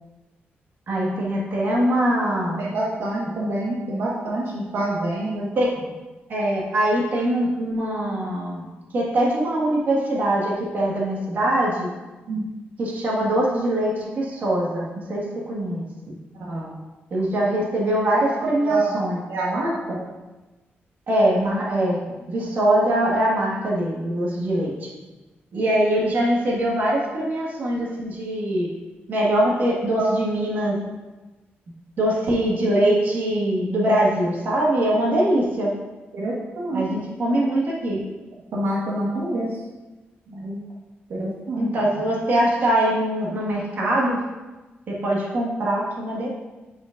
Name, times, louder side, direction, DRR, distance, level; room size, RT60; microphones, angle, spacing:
voice 1, 0.9-2.6 5.5-5.7 6.3-8.6 8.9-11.9 12.8-16.1 17.1-19.2 21.1-22.0 22.3-24.9 25.5-28.7 29.1-30.7 32.0-35.7 36.7-38.0 41.6-44.2 44.9-46.3, right 1 dB, 50° right, -4 dB, 1.7 m, -22 dB
voice 2, 2.6-5.5 12.3-12.4 16.3-16.7 18.4-19.0 19.3-20.0 29.9-30.1 36.1-36.8 38.5-39.5 40.3-40.6 41.1-41.9, right 2 dB, 75° right, -5 dB, 1.4 m, -26 dB
11.0 x 5.1 x 2.6 m, 1.2 s
wide cardioid pair, 170°, 4 cm